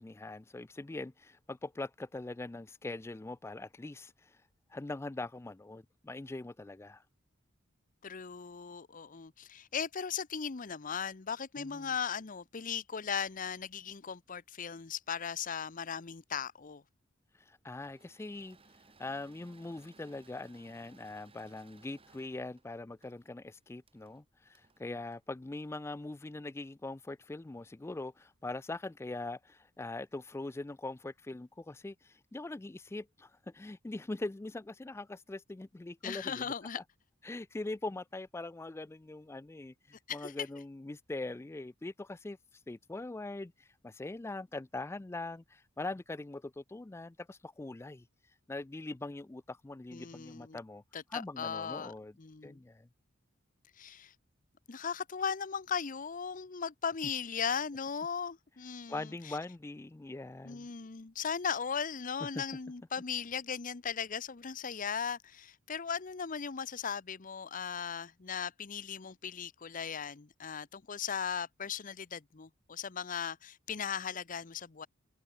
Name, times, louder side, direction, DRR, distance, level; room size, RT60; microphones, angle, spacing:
voice 1, 0.0-4.4 4.7-7.0 11.6-11.9 17.4-18.6 19.0-36.5 37.2-42.4 42.7-48.1 48.5-50.8 51.1-52.2 52.4-52.9 58.9-60.7 62.2-62.4, left 2 dB, 15° left, 0.3 m, -42 dB
voice 2, 8.0-16.8 36.0-36.8 40.1-40.3 49.9-50.6 50.9-51.9 52.2-52.6 53.8-54.1 54.7-59.4 60.4-74.9, left 7 dB, 40° left, 0.7 m, -38 dB
Engine / Mechanisms, 17.7-26.1, right 3 dB, 30° right, 3.1 m, -63 dB
head